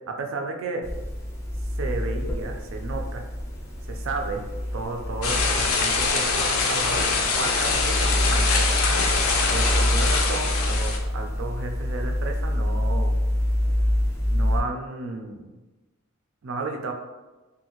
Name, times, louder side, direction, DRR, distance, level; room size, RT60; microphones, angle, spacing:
voice 1, 0.1-0.8 1.8-3.2 3.9-4.5 4.7-8.5 9.5-13.2 14.3-15.5 16.4-16.9, right 3 dB, 65° right, 3 dB, 0.4 m, -33 dB
sound 1, 0.8-14.6, left 1 dB, 15° left, 0.4 m, -27 dB
sound 2, 5.2-11.0, left 4 dB, 80° left, 0.5 m, -24 dB
2.7 x 2.5 x 2.8 m, 1.2 s
head